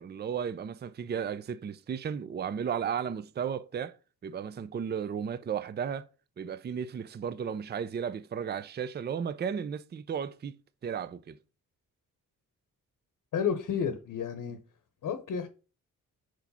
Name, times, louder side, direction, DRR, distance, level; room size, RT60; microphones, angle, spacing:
voice 1, 0.0-3.9 4.2-6.1 6.4-10.6 10.8-11.4, right 7 dB, 30° right, 0.4 m, -34 dB
voice 2, 13.3-14.6 15.0-15.5, left 7 dB, 70° left, 0.8 m, -31 dB
4.7 x 4.5 x 5.5 m
cardioid pair, 85°, 32 cm